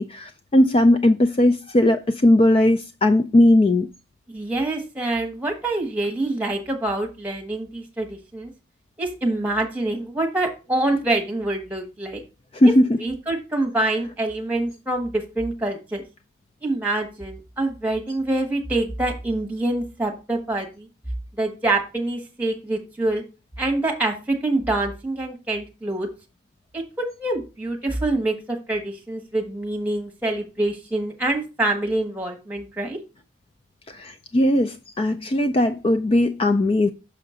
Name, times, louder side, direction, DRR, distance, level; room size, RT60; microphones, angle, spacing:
voice 1, 0.0-3.9 12.5-13.0 33.9-36.9, left 1 dB, 30° left, 0.4 m, -18 dB
voice 2, 4.3-8.5 9.0-12.2 13.0-16.0 16.6-20.9 21.3-23.2 23.6-26.1 26.7-33.0, right 2 dB, 10° right, 1.4 m, -26 dB
6.3 x 5.8 x 3.8 m
head